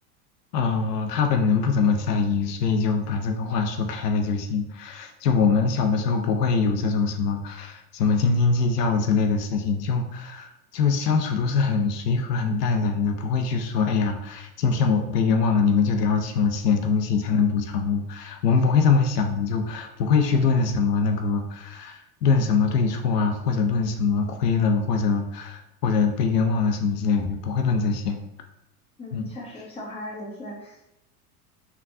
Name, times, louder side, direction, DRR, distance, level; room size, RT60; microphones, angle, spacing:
voice 1, 0.5-28.2 29.1-29.3, left 5 dB, 80° left, 5 dB, 0.5 m, -23 dB
voice 2, 29.0-30.8, left 1 dB, 10° left, -3 dB, 0.8 m, -38 dB
3.5 x 2.2 x 2.5 m, 0.87 s
hypercardioid pair, 90°, 47 cm